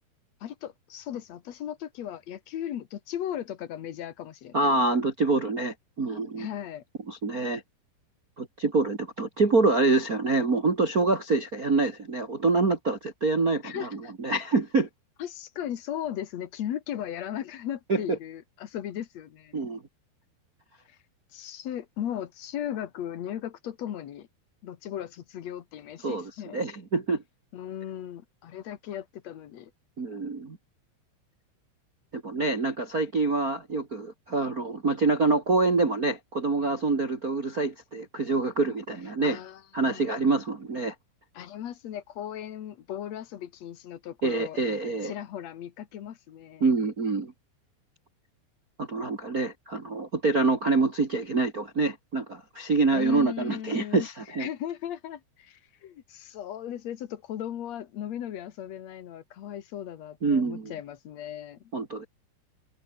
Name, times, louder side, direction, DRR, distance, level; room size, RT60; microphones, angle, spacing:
voice 1, 0.4-4.8 6.4-6.8 13.6-14.1 15.2-19.6 20.9-21.0 21.3-24.3 24.6-26.6 27.5-29.7 39.2-40.0 41.3-44.6 45.0-46.6 52.9-54.1 54.4-61.6, left 10 dB, 85° left, 1.5 m, -37 dB
voice 2, 4.5-6.5 7.1-7.6 8.4-14.9 17.9-18.2 19.5-19.8 26.0-27.2 30.0-30.6 32.1-39.4 39.7-40.9 44.2-45.1 46.6-47.3 48.8-54.5 60.2-60.7 61.7-62.0, right 3 dB, 70° right, 0.8 m, -26 dB
omnidirectional pair, 5.5 m